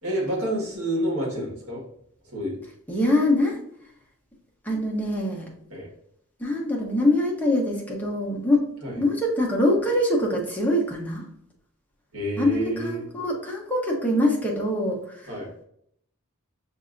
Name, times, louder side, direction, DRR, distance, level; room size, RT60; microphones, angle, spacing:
voice 1, 0.0-1.8 2.2-2.6 5.7-5.9 8.8-9.0 12.1-13.1 15.3-15.5, right 1 dB, 75° right, -2 dB, 1.6 m, -28 dB
voice 2, 2.9-3.6 4.6-5.5 6.4-8.6 9.0-11.3 12.4-15.3, left 1 dB, 10° left, -2 dB, 0.9 m, -24 dB
6.6 x 2.7 x 2.5 m, 0.70 s
head